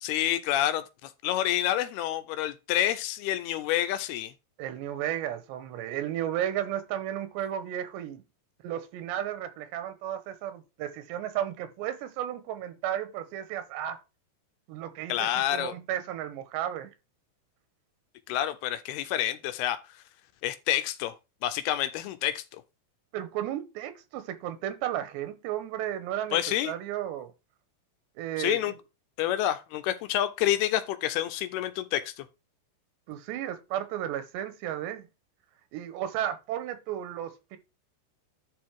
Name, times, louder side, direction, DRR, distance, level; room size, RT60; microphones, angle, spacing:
voice 1, 0.0-4.3 15.1-15.7 18.3-19.8 20.4-21.1 21.4-22.6 26.3-26.7 28.4-28.7 29.2-32.3, left 12 dB, 80° left, 2.5 m, -28 dB
voice 2, 4.6-8.2 8.6-14.0 14.7-16.9 23.1-26.4 26.6-27.3 28.2-28.8 33.1-35.1 35.7-37.6, right 11 dB, 90° right, 3.3 m, -33 dB
11.5 x 3.9 x 4.7 m
omnidirectional pair, 4.8 m